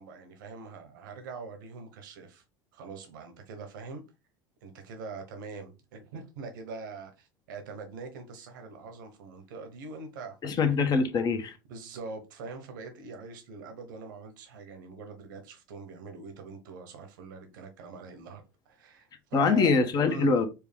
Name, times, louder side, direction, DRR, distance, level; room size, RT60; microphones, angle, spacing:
voice 1, 0.0-2.4 2.7-4.0 4.6-10.8 11.7-19.7 20.1-20.3, right 4 dB, 80° right, 1.1 m, -43 dB
voice 2, 10.4-11.6 19.3-20.5, left 4 dB, 40° left, 1.0 m, -24 dB
4.6 x 2.3 x 3.5 m
hypercardioid pair, 85°, 10 cm